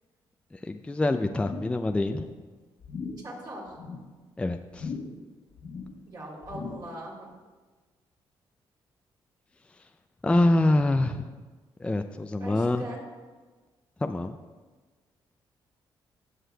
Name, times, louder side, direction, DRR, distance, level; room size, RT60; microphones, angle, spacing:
voice 1, 0.5-2.2 4.4-4.9 9.8-9.9 10.2-11.3 11.8-12.8 14.0-14.4, left 2 dB, 10° left, 7 dB, 0.4 m, -25 dB
sound 1, 1.3-1.8 2.1-2.4 2.8-3.3 3.7-4.1 4.7-5.3 5.5-6.0 6.4-7.0 7.3-7.4, left 4 dB, 65° left, 1.2 m, -39 dB
voice 2, 3.2-3.7 6.1-7.3 12.4-13.0, right 1 dB, 50° right, -2 dB, 3.0 m, -40 dB
16.5 x 6.5 x 2.3 m, 1.4 s
cardioid pair, 90°, 9 cm